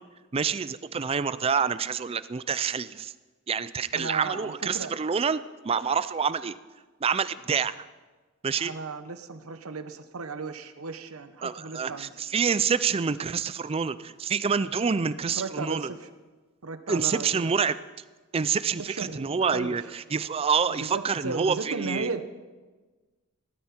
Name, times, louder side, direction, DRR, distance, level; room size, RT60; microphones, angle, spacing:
voice 1, 0.3-3.1 3.5-6.6 7.0-7.7 8.4-8.7 11.4-15.9 16.9-17.8 18.3-22.1, right 6 dB, 25° right, 15 dB, 0.4 m, -27 dB
voice 2, 3.9-4.9 8.6-12.1 15.3-16.1 16.6-17.6 18.8-19.9 20.7-22.2, right 4 dB, 80° right, 10 dB, 1.0 m, -35 dB
17.0 x 13.0 x 4.4 m, 1.3 s
head